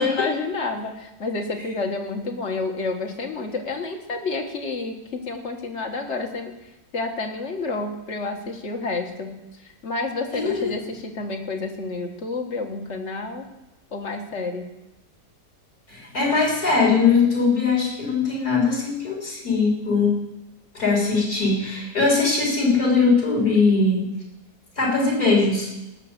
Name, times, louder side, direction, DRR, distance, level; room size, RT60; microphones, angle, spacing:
voice 1, 0.0-5.0 5.3-6.5 6.9-9.4 9.8-13.5 13.9-14.6, left 3 dB, 45° left, 4 dB, 1.9 m, -29 dB
voice 2, 10.3-10.7 15.9-20.2 20.7-24.1 24.8-25.7, left 4 dB, 60° left, -3 dB, 4.2 m, -21 dB
18.0 x 6.9 x 6.8 m, 0.96 s
omnidirectional pair, 1.7 m